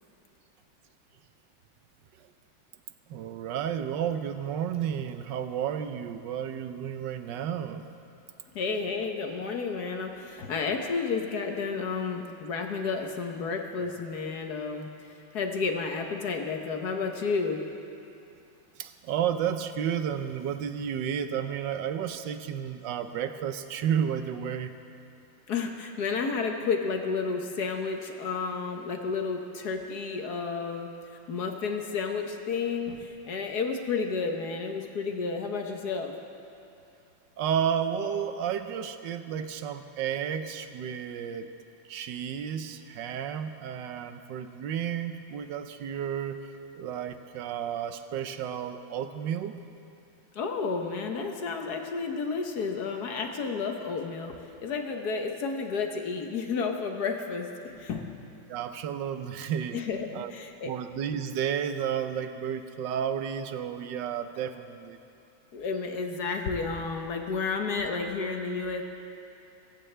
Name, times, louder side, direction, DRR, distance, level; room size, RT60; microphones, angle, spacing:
voice 1, 3.1-7.8 18.8-24.7 37.4-41.5 41.9-46.4 46.8-49.5 58.5-59.8 60.1-60.3 60.7-65.0, right 8 dB, 70° right, 9 dB, 1.3 m, -32 dB
voice 2, 8.5-14.9 15.3-17.6 25.5-30.9 31.3-36.1 50.3-58.1 59.7-60.7 65.5-68.8, left 4 dB, 55° left, 4 dB, 1.4 m, -31 dB
24.0 x 14.5 x 3.3 m, 2.6 s
omnidirectional pair, 2.2 m